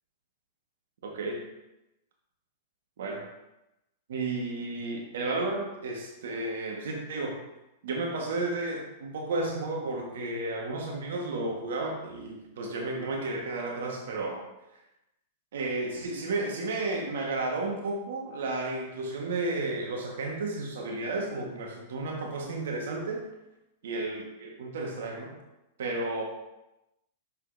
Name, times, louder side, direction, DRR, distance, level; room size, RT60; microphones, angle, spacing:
voice 1, 1.0-1.4 3.0-3.2 4.1-7.4 7.8-14.4 15.5-23.2 23.8-25.4 25.8-26.2, right 2 dB, 75° right, 0 dB, 1.5 m, -32 dB
6.8 x 5.5 x 2.7 m, 0.94 s
hypercardioid pair, 125°, 0 cm